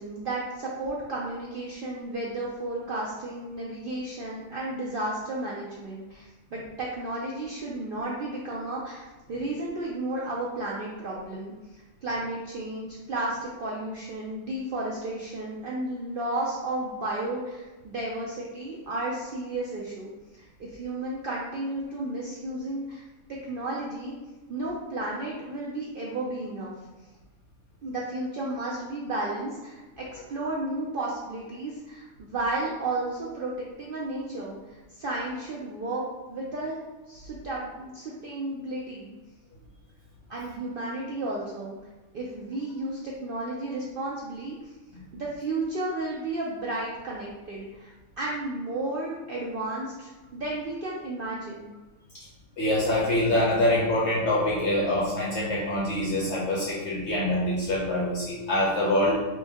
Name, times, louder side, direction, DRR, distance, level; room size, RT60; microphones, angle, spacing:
voice 1, 0.0-11.5 12.0-20.1 20.4-23.0 23.3-24.2 24.5-26.7 27.8-33.5 33.8-36.8 37.1-39.1 40.3-41.7 42.1-44.7 45.1-51.7, right 2 dB, 75° right, -4 dB, 0.5 m, -33 dB
voice 2, 52.6-59.2, left 1 dB, 60° left, -5 dB, 0.9 m, -25 dB
3.1 x 2.6 x 3.4 m, 1.2 s
omnidirectional pair, 1.5 m